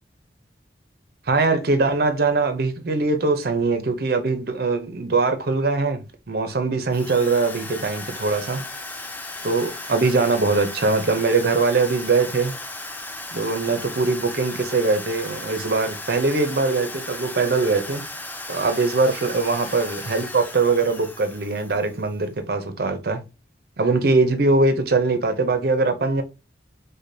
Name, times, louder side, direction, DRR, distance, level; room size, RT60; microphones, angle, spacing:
voice 1, 1.3-8.6 9.4-12.5 13.3-18.0 18.5-23.2 23.8-26.2, right 3 dB, 55° right, 0.6 m, -22 dB
Drill, 6.9-22.1, left 2 dB, 10° left, 0.3 m, -36 dB
4.9 x 2.2 x 2.6 m
head